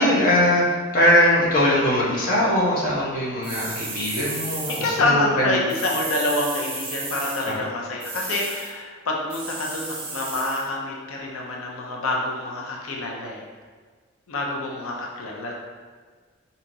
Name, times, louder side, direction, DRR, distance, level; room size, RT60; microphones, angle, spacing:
voice 1, 0.0-5.5 7.4-7.6, left 1 dB, 45° left, -6 dB, 0.9 m, -21 dB
sound 1, 3.4-5.0 5.7-7.6 8.0-8.7 9.3-10.7, right 3 dB, 25° right, 0.6 m, -33 dB
voice 2, 4.7-13.4 14.3-15.5, left 2 dB, 85° left, -1 dB, 0.5 m, -27 dB
4.5 x 2.8 x 2.6 m, 1.5 s
head